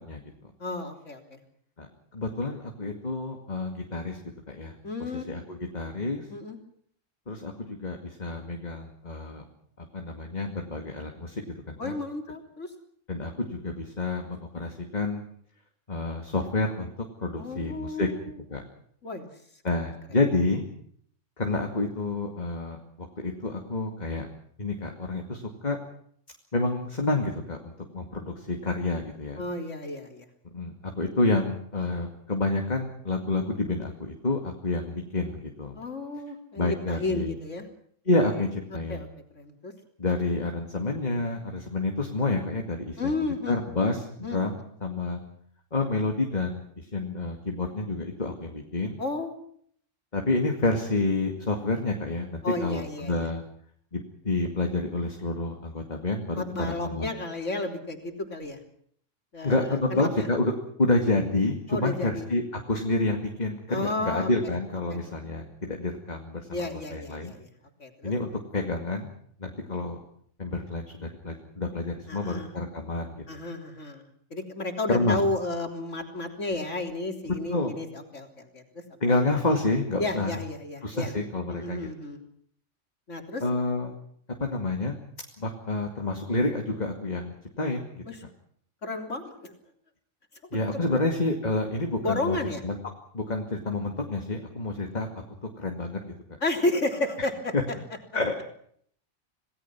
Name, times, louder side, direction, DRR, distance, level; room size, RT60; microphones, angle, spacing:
voice 1, 0.6-1.4 4.8-5.3 6.3-6.6 11.8-12.7 17.4-18.4 19.0-19.3 19.8-19.9 29.4-30.3 35.7-37.7 38.2-38.4 38.9-39.1 39.3-39.7 43.0-43.6 44.2-44.4 49.0-49.3 52.4-53.3 56.3-58.6 59.3-60.3 61.7-62.3 63.7-64.3 64.9-65.1 66.5-67.5 67.8-68.1 72.1-72.5 73.3-74.0 74.3-78.6 79.1-79.2 80.0-81.1 81.5-82.2 83.1-83.4 88.1-88.2 88.8-89.5 90.7-91.0 92.0-92.6 96.4-97.5, left 2 dB, 70° left, 4 dB, 3.9 m, -32 dB
voice 2, 1.8-4.2 4.5-4.8 5.1-6.3 7.3-9.4 9.9-11.4 11.7-11.9 13.1-15.2 15.9-16.9 17.2-18.1 18.5-18.6 19.6-20.7 21.4-24.3 24.6-25.8 26.5-29.4 30.5-35.7 36.6-37.3 38.1-39.1 40.0-43.1 43.5-45.2 45.7-49.0 50.1-53.4 53.9-56.4 56.8-57.1 59.4-60.5 60.8-67.4 68.0-69.1 69.4-70.0 70.4-73.2 74.9-75.2 77.2-77.8 79.0-80.4 80.8-81.9 83.4-83.9 84.4-85.0 85.4-88.0 90.5-92.4 92.6-92.8 93.1-95.1 95.6-96.0 97.5-97.6 98.1-98.5, left 2 dB, 35° left, 3 dB, 2.5 m, -29 dB
28.0 x 18.5 x 6.0 m, 0.63 s
omnidirectional pair, 1.3 m